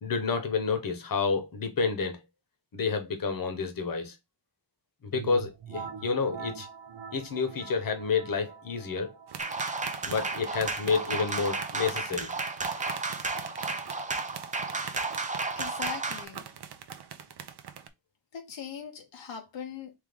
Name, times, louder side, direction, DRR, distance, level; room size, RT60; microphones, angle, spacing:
voice 1, 0.0-2.2 2.7-4.1 5.1-6.7 7.1-9.1 10.0-12.3, left 5 dB, 50° left, 0.9 m, -29 dB
sound 1, 5.1-14.7, right 7 dB, 90° right, 0.9 m, -46 dB
sound 2, 9.3-17.9, right 8 dB, 60° right, 0.6 m, -43 dB
sound 3, 9.4-16.3, right 3 dB, 20° right, 0.4 m, -33 dB
voice 2, 15.6-16.4 18.3-19.9, left 7 dB, 75° left, 0.7 m, -40 dB
3.4 x 3.1 x 3.5 m
wide cardioid pair, 120°, 45 cm